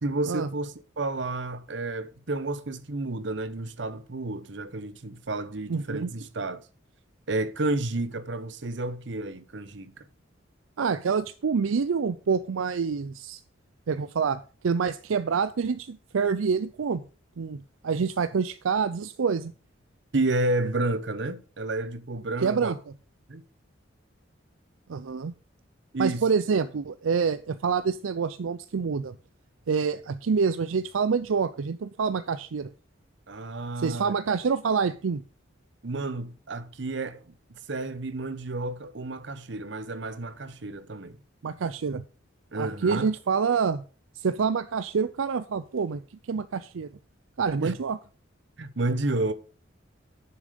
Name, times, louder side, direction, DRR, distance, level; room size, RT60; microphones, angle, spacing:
voice 1, 0.0-6.6 7.3-9.9 20.1-22.7 23.3-23.4 25.9-26.6 33.3-34.1 35.8-41.2 42.5-43.1 47.6-47.8 48.6-49.3, right 2 dB, 65° right, 0.9 m, -31 dB
voice 2, 5.7-6.1 10.8-13.4 13.9-17.0 17.4-19.5 22.4-22.8 24.9-25.3 26.0-29.2 29.7-32.7 33.8-35.2 41.4-42.0 42.5-43.8 44.2-46.0 46.3-46.9 47.4-48.0, right 5 dB, 85° right, 0.5 m, -27 dB
10.0 x 7.2 x 5.1 m
head